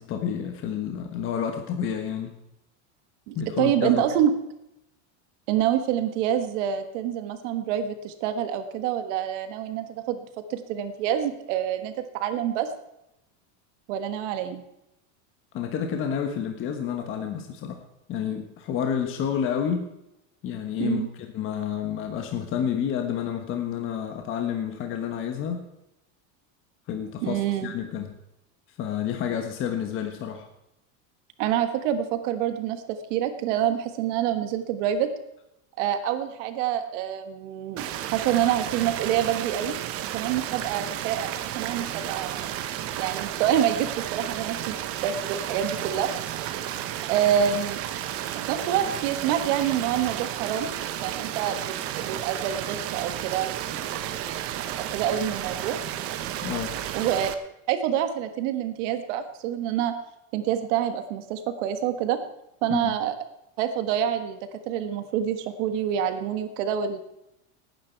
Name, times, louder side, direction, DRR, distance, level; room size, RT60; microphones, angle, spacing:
voice 1, 0.0-2.4 3.3-4.0 15.5-17.8 18.1-19.9 20.4-25.7 26.9-28.1 28.8-30.5 56.4-56.8 62.7-62.9, left 8 dB, 30° left, 4 dB, 1.3 m, -29 dB
voice 2, 3.3-4.3 5.5-10.2 10.5-12.7 13.9-14.6 20.8-21.1 27.2-27.7 31.4-35.1 35.8-39.7 40.1-42.5 43.0-46.1 47.1-47.8 48.3-50.7 51.0-55.8 56.9-57.3 57.7-59.9 60.3-62.2 62.6-63.1 63.6-64.4 64.7-67.0, right 10 dB, 65° right, 8 dB, 1.6 m, -27 dB
sound 1, 37.8-57.3, right 11 dB, 35° right, 0.9 m, -32 dB
18.0 x 9.6 x 4.6 m, 0.85 s
supercardioid pair, 165°, 39 cm